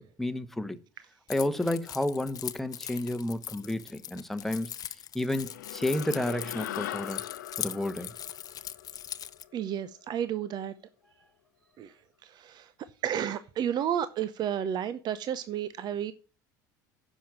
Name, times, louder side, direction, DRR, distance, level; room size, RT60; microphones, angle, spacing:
voice 1, 0.2-0.8 1.3-4.7 5.1-7.2 7.6-8.1, left 1 dB, ahead, 1.1 m, -31 dB
Keys jangling, 1.3-9.4, left 10 dB, 40° left, 0.7 m, -41 dB
sound 1, 5.3-10.0, left 12 dB, 75° left, 0.8 m, -41 dB
voice 2, 9.5-10.7 11.8-11.9 12.2-12.7 13.0-16.1, right 9 dB, 45° right, 0.7 m, -31 dB
10.0 x 6.3 x 7.4 m
hypercardioid pair, 70°, 10 cm